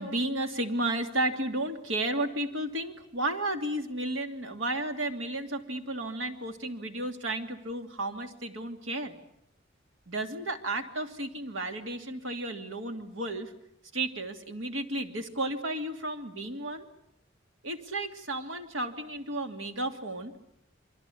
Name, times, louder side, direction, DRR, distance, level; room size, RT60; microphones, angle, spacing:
voice 1, 0.0-9.2 10.1-13.5 13.9-16.8 17.6-20.3, right 1 dB, 90° right, 6 dB, 2.8 m, -33 dB
28.5 x 23.5 x 8.5 m, 0.76 s
head